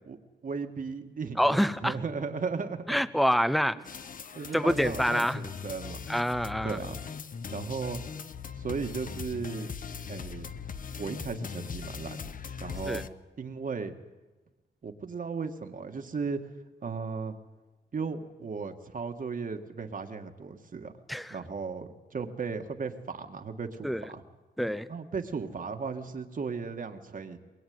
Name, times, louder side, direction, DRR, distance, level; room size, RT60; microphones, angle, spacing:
voice 1, 0.0-2.9 4.3-6.0 6.6-7.0 7.5-8.0 8.6-9.7 10.1-10.5 11.0-12.3 12.6-13.0 13.4-13.9 14.8-16.4 16.8-17.4 17.9-20.9 21.3-24.2 24.9-27.4, right 5 dB, 45° right, 5 dB, 1.9 m, -36 dB
voice 2, 1.4-2.0 2.9-3.8 4.5-5.4 6.1-6.8 12.9-13.0 21.1-21.4 23.8-24.1 24.6-24.9, equal, ahead, 14 dB, 0.8 m, -26 dB
sound 1, 3.8-13.1, left 6 dB, 45° left, 0.9 m, -40 dB
22.5 x 21.5 x 9.6 m, 1.2 s
wide cardioid pair, 140°, 19 cm